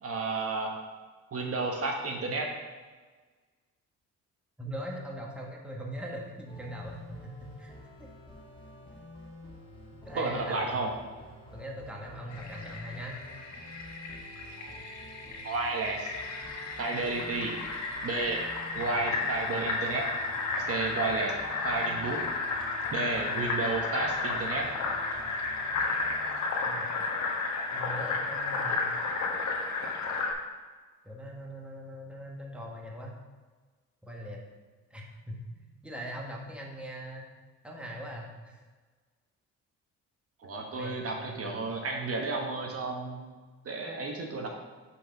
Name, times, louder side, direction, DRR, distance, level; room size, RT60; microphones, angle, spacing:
voice 1, 0.0-0.7 1.3-2.5 10.1-10.9 14.6-14.7 15.4-16.1 16.8-17.5 18.0-18.4 18.7-20.1 20.7-21.3 21.6-22.2 22.9-24.7 40.4-43.3 43.6-44.5, right 3 dB, 50° right, 1 dB, 1.2 m, -32 dB
voice 2, 4.6-8.1 10.0-10.8 11.5-13.2 18.8-19.0 23.3-23.4 26.6-26.9 27.7-28.9 31.0-33.2 34.0-34.4 34.9-37.3 37.6-38.6 40.7-41.7, equal, 5° right, -1 dB, 1.4 m, -41 dB
sound 1, 6.5-26.3, left 1 dB, 15° left, 2.1 m, -49 dB
Fill (with liquid), 12.3-30.3, left 3 dB, 70° left, 1.4 m, -33 dB
5.9 x 4.9 x 5.8 m, 1.4 s
cardioid pair, 90°, 30 cm